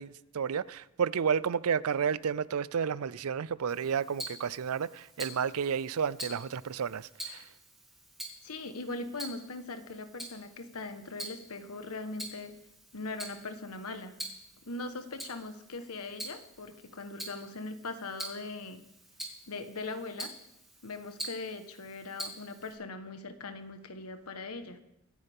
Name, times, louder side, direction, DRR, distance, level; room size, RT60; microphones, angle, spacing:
voice 1, 0.0-7.4, right 7 dB, 80° right, 0.5 m, -31 dB
Tick-tock, 3.7-22.7, right 1 dB, ahead, 2.5 m, -46 dB
voice 2, 8.4-12.6 12.9-14.2 14.6-18.8 19.5-20.3 20.8-24.8, left 3 dB, 85° left, 1.3 m, -40 dB
24.5 x 9.8 x 3.6 m
head